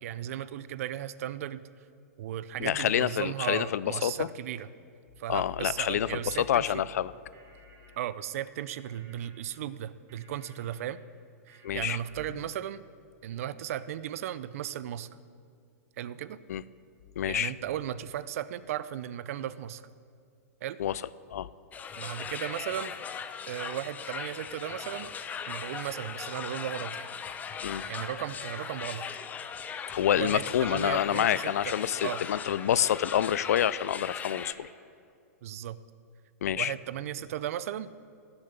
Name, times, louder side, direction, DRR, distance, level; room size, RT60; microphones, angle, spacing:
voice 1, 0.0-1.6 2.2-4.7 5.2-6.7 8.0-11.0 11.5-12.8 13.2-15.1 16.0-16.4 17.3-19.8 20.6-20.8 21.9-22.9 23.5-25.1 25.5-27.1 27.9-29.1 30.1-31.7 32.0-32.2 35.4-35.8 36.6-37.9, right 11 dB, 65° right, 16 dB, 0.5 m, -36 dB
voice 2, 2.6-4.3 5.3-7.1 11.6-12.0 16.5-16.6 17.2-17.5 20.8-21.0 21.3-21.5 27.6-27.8 29.9-34.7 36.4-36.7, left 10 dB, 75° left, 18 dB, 0.4 m, -27 dB
sound 1, 5.9-12.5, right 2 dB, 35° right, 2.5 m, -59 dB
sound 2, 21.7-34.5, left 7 dB, 20° left, 0.6 m, -39 dB
16.0 x 7.2 x 6.7 m, 2.3 s
hypercardioid pair, 130°, 8 cm